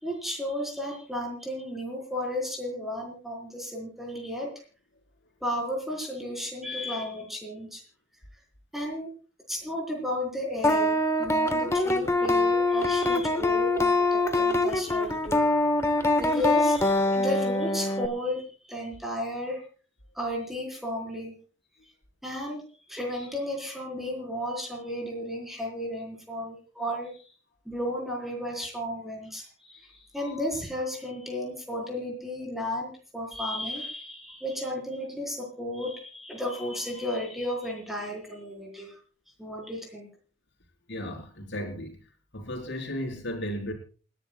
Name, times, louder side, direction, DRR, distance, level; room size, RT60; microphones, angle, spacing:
voice 1, 0.0-4.5 5.4-7.8 8.7-9.1 9.5-15.4 16.2-19.6 20.1-21.4 22.2-22.6 22.9-27.3 27.7-38.9 39.4-40.1, left 1 dB, ahead, 0 dB, 4.5 m, -33 dB
sound 1, 10.6-18.1, left 2 dB, 15° left, 1.2 m, -24 dB
voice 2, 40.9-42.0 42.3-43.7, equal, 60° left, 2 dB, 4.3 m, -34 dB
28.0 x 11.0 x 2.4 m, 0.38 s
head